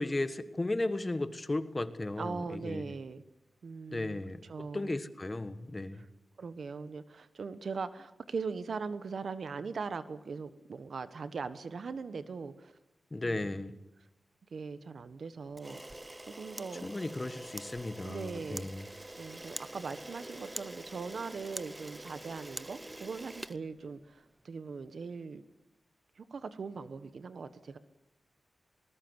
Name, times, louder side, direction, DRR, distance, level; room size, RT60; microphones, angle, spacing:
voice 1, 0.0-2.9 3.9-4.4 4.7-6.0 13.1-13.7 16.8-18.9, left 2 dB, 30° left, 12 dB, 1.4 m, -35 dB
voice 2, 2.2-3.2 3.6-4.9 5.9-6.1 6.4-12.7 13.2-13.6 14.5-15.8 16.3-16.9 18.0-18.7 19.2-25.4 26.2-27.8, right 5 dB, 70° right, 12 dB, 1.3 m, -40 dB
Camera, 15.5-24.3, right 1 dB, 15° right, 0.8 m, -45 dB
20.0 x 19.5 x 8.1 m, 0.90 s
cardioid pair, 75°, 0 cm